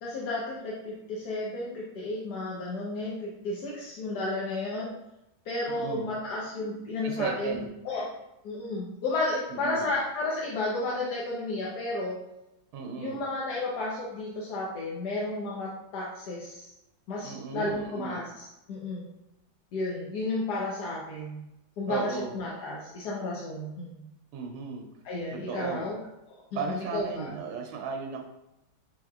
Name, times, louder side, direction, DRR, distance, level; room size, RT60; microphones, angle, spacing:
voice 1, 0.0-4.9 5.4-8.1 8.4-12.1 13.0-16.7 17.1-19.0 19.7-21.4 21.8-24.1 25.0-26.0 26.3-27.3, left 2 dB, 60° left, -5 dB, 1.2 m, -32 dB
voice 2, 5.7-6.1 6.9-7.7 9.5-9.9 12.7-13.2 17.2-18.2 21.9-22.3 24.3-24.9 25.3-25.9 26.5-28.2, right 5 dB, 90° right, 2 dB, 1.5 m, -35 dB
6.3 x 3.5 x 2.3 m, 0.89 s
omnidirectional pair, 2.2 m